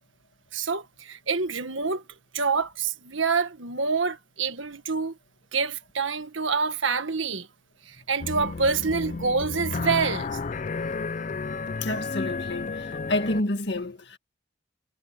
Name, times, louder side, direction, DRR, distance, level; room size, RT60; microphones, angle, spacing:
voice 1, 0.5-2.0 2.3-5.2 5.5-7.5 7.9-10.4, right 5 dB, 75° right, 1.6 m, -27 dB
sound 1, 8.2-13.4, left 4 dB, 40° left, 0.4 m, -32 dB
voice 2, 11.8-14.2, left 1 dB, 55° left, 2.0 m, -29 dB
head